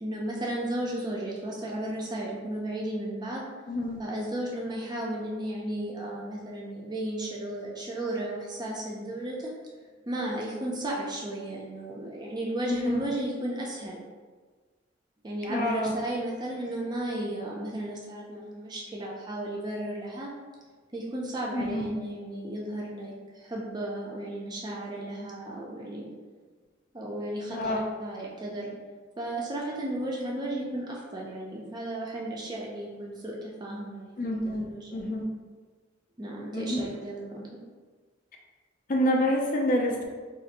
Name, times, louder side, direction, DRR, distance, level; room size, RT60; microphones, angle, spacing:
voice 1, 0.0-3.4 4.0-9.5 10.1-14.0 15.2-20.3 20.9-26.1 26.9-28.7 29.2-35.0 36.2-37.6, right 1 dB, 20° right, -3 dB, 0.4 m, -34 dB
voice 2, 3.7-4.0 12.7-13.0 15.5-15.9 21.5-21.9 27.5-27.8 34.2-35.2 36.5-36.8 38.9-40.0, left 1 dB, 45° left, 0 dB, 0.4 m, -28 dB
2.6 x 2.5 x 4.0 m, 1.4 s
head